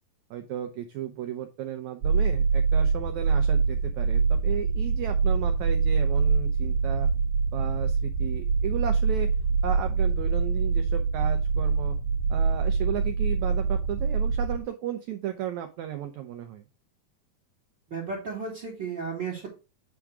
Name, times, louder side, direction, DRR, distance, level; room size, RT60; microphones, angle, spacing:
voice 1, 0.3-7.1 7.5-9.3 9.6-11.9 12.3-16.6, right 10 dB, 90° right, 7 dB, 1.6 m, -34 dB
sound 1, 2.0-14.6, right 5 dB, 70° right, 2.5 m, -24 dB
voice 2, 17.9-19.5, right 5 dB, 35° right, -1 dB, 2.4 m, -34 dB
9.1 x 3.6 x 4.7 m, 0.29 s
omnidirectional pair, 4.2 m